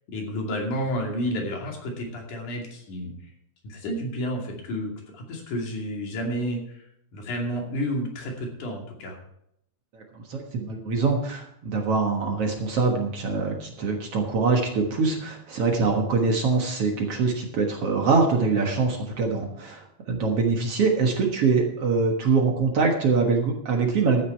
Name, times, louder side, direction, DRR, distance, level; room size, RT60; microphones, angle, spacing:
voice 1, 0.1-3.1 3.6-6.8 7.1-9.2, equal, 70° left, 0 dB, 4.0 m, -30 dB
voice 2, 9.9-24.2, right 4 dB, 55° right, 2 dB, 2.1 m, -24 dB
13.5 x 9.5 x 4.5 m, 0.74 s
omnidirectional pair, 3.7 m